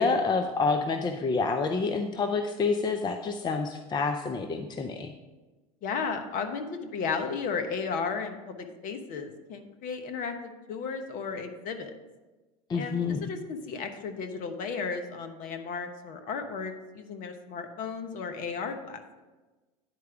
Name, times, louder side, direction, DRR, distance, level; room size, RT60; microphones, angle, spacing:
voice 1, 0.0-5.1 12.7-13.2, left 4 dB, 25° left, 7 dB, 0.6 m, -28 dB
voice 2, 5.8-11.9 12.7-19.0, left 5 dB, 50° left, 7 dB, 1.1 m, -34 dB
9.5 x 4.7 x 5.9 m, 1.2 s
hypercardioid pair, 90°, 18 cm